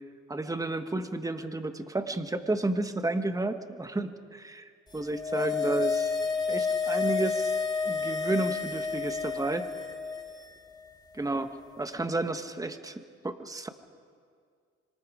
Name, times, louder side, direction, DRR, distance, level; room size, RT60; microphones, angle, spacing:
voice 1, 0.3-6.1 6.5-7.6 7.9-9.7 11.1-12.9 13.2-13.7, right 2 dB, 10° right, 8 dB, 1.3 m, -31 dB
sound 1, 5.0-10.4 10.7-10.8, left 5 dB, 15° left, 2.0 m, -30 dB
26.0 x 24.5 x 5.0 m, 2.1 s
cardioid pair, 90°, 30 cm